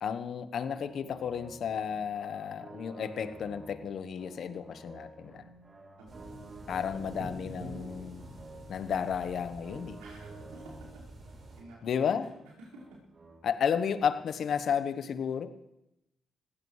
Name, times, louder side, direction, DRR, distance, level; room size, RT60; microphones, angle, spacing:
voice 1, 0.0-5.5 6.7-8.3 8.7-10.0 11.8-12.3 13.4-15.5, left 7 dB, 65° left, 11 dB, 1.0 m, -32 dB
sound 1, 0.6-14.7, right 2 dB, 45° right, 3.2 m, -51 dB
sound 2, 6.1-11.6, right 2 dB, 60° right, 4.6 m, -47 dB
voice 2, 10.0-11.0 11.5-11.9 12.6-13.0, right 2 dB, 90° right, -6 dB, 5.0 m, -52 dB
21.0 x 16.0 x 3.2 m, 0.88 s
hypercardioid pair, 45°, 0 cm